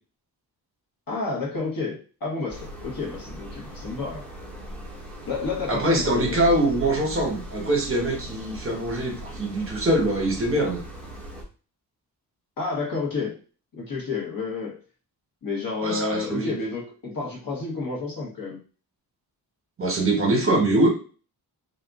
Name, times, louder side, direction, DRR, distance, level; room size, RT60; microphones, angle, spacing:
voice 1, 1.1-4.2 5.2-6.4 12.6-13.4 13.7-14.8 15.4-18.6, left 4 dB, 60° left, -2 dB, 1.3 m, -30 dB
sound 1, 2.5-11.4, right 1 dB, 5° left, 0.7 m, -39 dB
voice 2, 5.7-10.8 15.8-16.5 19.8-20.9, right 1 dB, 35° right, 0 dB, 1.0 m, -23 dB
2.7 x 2.5 x 3.5 m, 0.37 s
wide cardioid pair, 135°, 39 cm